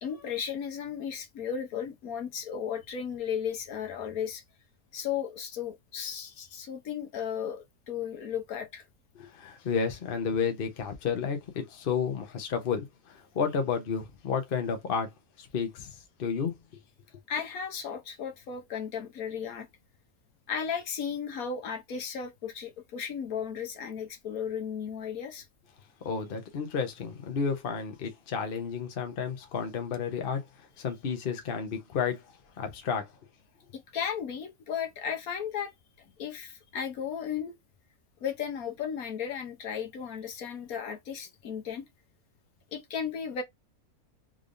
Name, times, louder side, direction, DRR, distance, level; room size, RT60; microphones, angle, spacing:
voice 1, 0.0-4.4 4.9-8.8 17.3-19.7 20.5-25.5 33.7-35.7 36.2-37.6 38.2-41.8 42.7-43.4, left 7 dB, 70° left, 1.3 m, -35 dB
voice 2, 9.2-15.1 15.4-15.9 16.2-16.5 26.0-30.4 30.8-32.2 32.6-33.1, left 6 dB, 45° left, 0.9 m, -31 dB
3.7 x 3.3 x 2.6 m
omnidirectional pair, 1.6 m